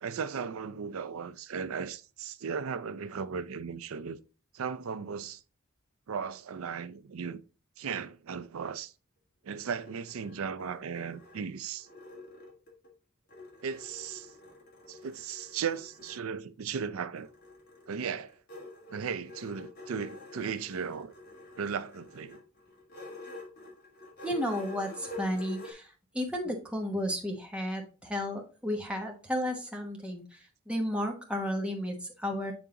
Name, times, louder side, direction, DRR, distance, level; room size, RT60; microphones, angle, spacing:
voice 1, 0.0-4.2 4.5-5.4 6.1-7.4 7.8-8.9 9.4-11.9 13.6-14.3 14.9-17.3 17.9-18.3 18.9-21.1 21.6-22.4, right 6 dB, 80° right, 0.4 m, -36 dB
sound 1, 9.6-12.9 13.3-16.2 17.2-25.7, left 2 dB, 45° left, 1.9 m, -48 dB
voice 2, 24.2-32.5, equal, 5° right, 1.0 m, -33 dB
7.2 x 3.7 x 3.8 m
head